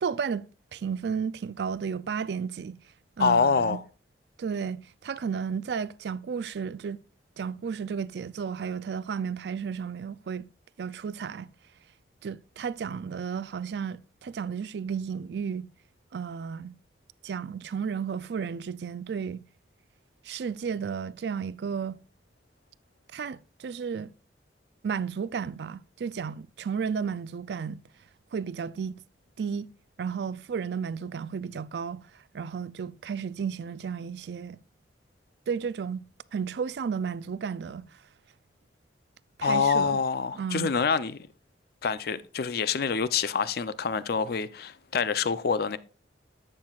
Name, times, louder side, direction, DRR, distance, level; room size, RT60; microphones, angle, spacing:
voice 1, 0.0-2.8 3.2-3.8 4.4-7.0 7.4-10.5 10.8-11.5 12.2-15.7 16.1-16.8 17.2-19.4 20.2-22.0 23.1-24.1 24.8-27.8 28.3-29.0 29.4-29.7 30.0-34.6 35.5-36.0 36.3-38.0 39.4-40.0 40.3-40.7, right 6 dB, 65° right, 0.4 m, -33 dB
voice 2, 3.2-3.8 39.4-41.3 41.8-45.8, left 5 dB, 60° left, 0.5 m, -26 dB
11.5 x 7.7 x 2.4 m
head